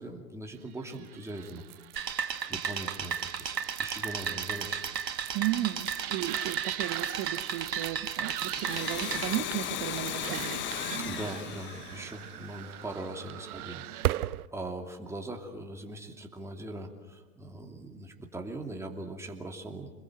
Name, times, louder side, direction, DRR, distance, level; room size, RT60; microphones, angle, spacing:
voice 1, 0.0-1.6 2.2-4.8 11.0-19.9, right 2 dB, 5° right, 2 dB, 2.7 m, -41 dB
sound 1, 0.8-14.5, right 14 dB, 60° right, 0.7 m, -39 dB
sound 2, 2.0-9.3, right 7 dB, 85° right, 2.2 m, -34 dB
voice 2, 5.3-10.7, right 14 dB, 30° right, 9 dB, 0.9 m, -34 dB
Domestic sounds home sounds, 8.4-12.9, left 11 dB, 25° left, 0.9 m, -37 dB
27.0 x 21.0 x 7.7 m, 1.3 s
hypercardioid pair, 115°, 49 cm